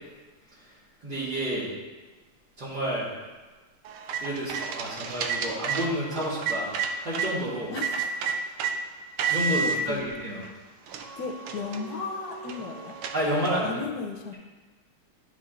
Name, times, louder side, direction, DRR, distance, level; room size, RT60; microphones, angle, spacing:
voice 1, 1.0-1.7 2.6-3.1 4.2-7.7 9.2-10.4 13.1-13.8, equal, 55° right, -9 dB, 2.4 m, -30 dB
sound 1, 3.9-7.3 7.8-8.7 9.2-9.8 10.4-10.5 10.9-13.7, right 6 dB, 75° right, 1.4 m, -31 dB
voice 2, 7.7-8.2 9.6-10.0 11.2-13.0 13.6-14.3, left 4 dB, 70° left, 2 dB, 0.9 m, -35 dB
11.5 x 6.4 x 2.5 m, 1.3 s
omnidirectional pair, 2.4 m